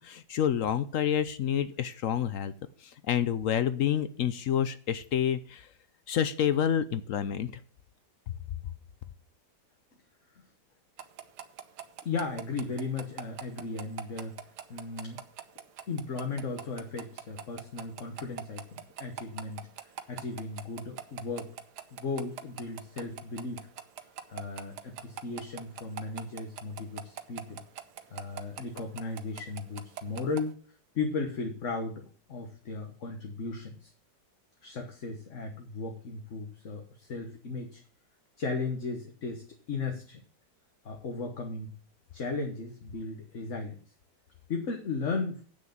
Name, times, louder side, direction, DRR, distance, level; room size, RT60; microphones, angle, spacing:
voice 1, 0.0-2.5 2.8-5.7 6.1-7.5, left 9 dB, 65° left, 13 dB, 0.8 m, -28 dB
sound 1, 11.0-30.4, right 10 dB, 75° right, 1.4 m, -41 dB
voice 2, 12.0-14.4 14.7-15.2 15.9-21.5 21.9-23.7 24.3-27.6 28.1-30.6 30.9-33.9 34.6-37.8 38.4-40.2 40.8-41.7 42.1-43.8 44.5-45.4, left 3 dB, 45° left, 4 dB, 1.5 m, -36 dB
8.5 x 6.5 x 7.2 m, 0.43 s
omnidirectional pair, 1.9 m